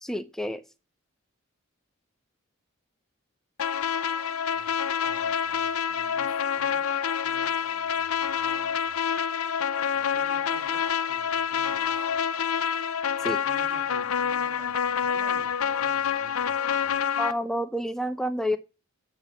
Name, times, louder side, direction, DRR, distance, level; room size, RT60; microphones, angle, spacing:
voice 1, 0.0-0.6 13.2-13.4 17.2-18.6, equal, ahead, 0.6 m, -29 dB
sound 1, 3.6-17.3, left 7 dB, 80° left, 0.6 m, -27 dB
voice 2, 5.0-6.8 7.2-9.0 9.9-12.2 13.2-17.0, right 2 dB, 75° right, 2.1 m, -50 dB
8.5 x 5.6 x 5.5 m
head